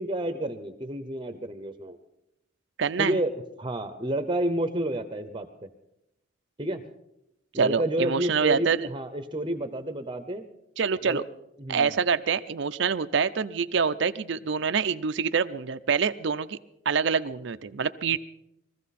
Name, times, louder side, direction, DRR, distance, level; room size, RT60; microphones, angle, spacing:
voice 1, 0.0-2.0 3.0-5.7 6.6-6.8 7.5-10.5 11.0-11.2 11.6-11.9, right 1 dB, 25° right, 8 dB, 0.8 m, -30 dB
voice 2, 2.8-3.2 7.5-8.9 10.8-11.2 11.7-16.6 16.9-18.2, right 6 dB, 60° right, 10 dB, 0.5 m, -26 dB
22.0 x 15.0 x 4.2 m, 0.84 s
head